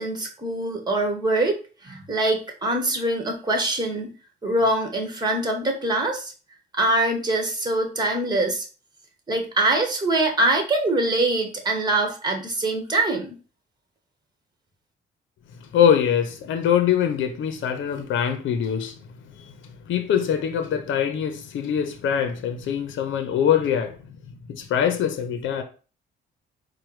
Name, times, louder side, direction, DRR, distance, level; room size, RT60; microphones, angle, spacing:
voice 1, 0.0-1.6 1.8-4.1 4.4-6.3 6.7-8.6 9.3-13.4, right 2 dB, 20° right, 1.4 m, -23 dB
voice 2, 15.7-18.9 19.4-19.5 19.9-24.0 24.5-25.6, left 8 dB, 75° left, 0.8 m, -23 dB
4.5 x 2.3 x 4.7 m
cardioid pair, 90°, 20 cm